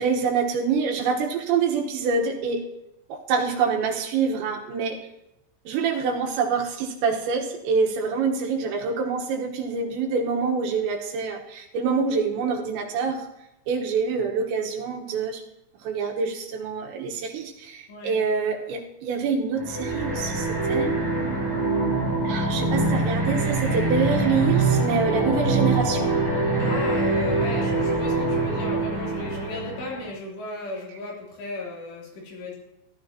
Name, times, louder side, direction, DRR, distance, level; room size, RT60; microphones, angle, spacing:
voice 1, 0.0-2.7 3.1-5.0 5.7-13.3 13.7-15.4 15.8-20.9 22.3-26.2, right 5 dB, 85° right, 1 dB, 3.6 m, -26 dB
voice 2, 17.9-18.2 26.6-32.6, left 2 dB, 75° left, -4 dB, 5.5 m, -35 dB
sound 1, 19.6-30.1, right 2 dB, 10° right, 1.6 m, -24 dB
15.5 x 12.5 x 2.9 m, 0.89 s
omnidirectional pair, 5.1 m